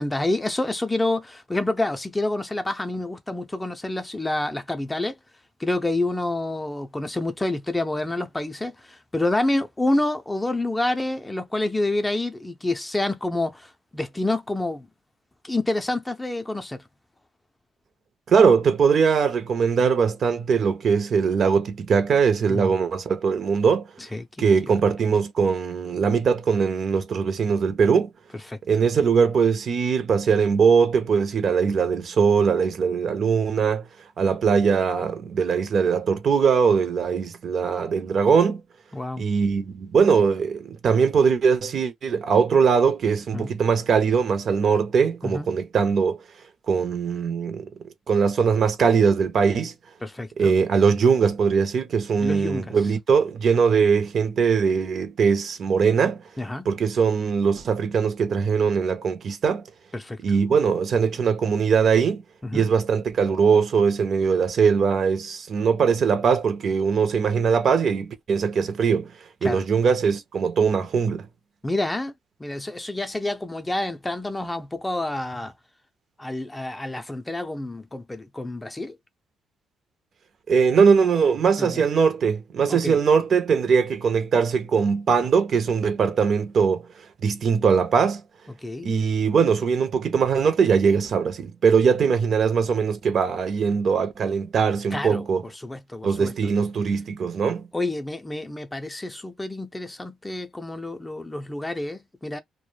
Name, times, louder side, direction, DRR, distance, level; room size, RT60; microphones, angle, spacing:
voice 1, 0.0-5.2 5.6-14.9 15.4-16.8 22.5-22.7 24.1-24.7 28.5-28.6 38.9-39.2 43.3-43.5 45.2-45.5 50.0-50.6 52.2-52.7 56.4-56.7 59.9-60.2 62.4-62.7 69.4-69.6 71.6-72.1 72.4-75.5 76.2-78.9 81.6-81.8 82.7-83.0 88.6-88.9 94.9-95.2 95.6-96.3 97.7-102.4, left 2 dB, 15° left, 0.4 m, -28 dB
voice 2, 18.3-23.9 24.4-28.1 28.7-33.8 34.2-38.6 39.2-46.2 46.7-47.7 48.1-49.7 50.4-56.2 56.7-59.6 60.2-62.2 62.5-69.1 69.4-71.3 80.5-86.8 87.2-88.2 88.8-95.4 96.0-97.7, right 6 dB, 55° right, 0.5 m, -21 dB
2.1 x 2.0 x 3.1 m
cardioid pair, 90°, 0 cm